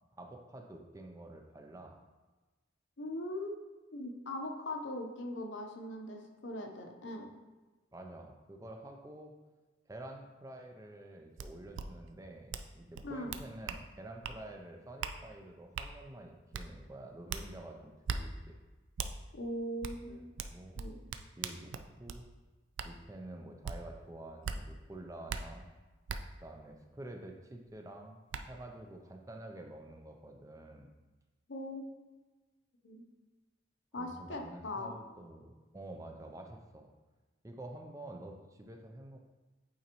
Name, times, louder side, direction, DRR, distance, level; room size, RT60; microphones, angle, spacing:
voice 1, 0.2-2.0 7.9-9.3 9.9-18.6 20.1-20.9 21.4-21.7 22.0-22.2 22.8-25.7 26.4-28.2 28.5-30.9 34.0-36.9 37.4-39.2, right 1 dB, 15° right, 3 dB, 0.5 m, -49 dB
voice 2, 3.0-3.6 3.9-7.3 13.0-13.3 19.3-20.3 20.8-21.0 31.5-31.8 32.8-33.0 33.9-34.9, left 1 dB, 70° left, 3 dB, 0.8 m, -40 dB
sound 1, 11.4-11.5 11.7-11.9 12.5-12.7 12.9-13.8 14.2-14.4 15.0-15.2 15.8-15.9 16.5-16.7 17.3-17.4 18.1-18.2 19.0-19.1 19.8-20.0 20.4-22.2 22.8-22.9 23.6-23.8 24.4-24.6 25.3-25.4 26.1-26.2 27.7-27.8 28.3-28.4, right 6 dB, 80° right, 0.4 m, -38 dB
8.4 x 3.9 x 3.0 m, 1.2 s
head